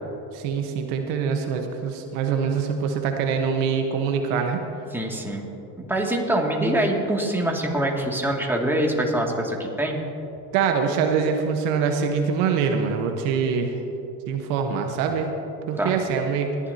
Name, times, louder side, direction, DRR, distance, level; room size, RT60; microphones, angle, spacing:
voice 1, 0.3-4.6 10.5-13.7 14.3-15.3 15.7-16.5, right 6 dB, 80° right, 4 dB, 1.3 m, -24 dB
voice 2, 4.9-5.5 5.8-10.0 15.8-16.0, right 1 dB, 5° right, -1 dB, 2.3 m, -24 dB
20.5 x 11.5 x 2.8 m, 3.0 s
supercardioid pair, 80°, 43 cm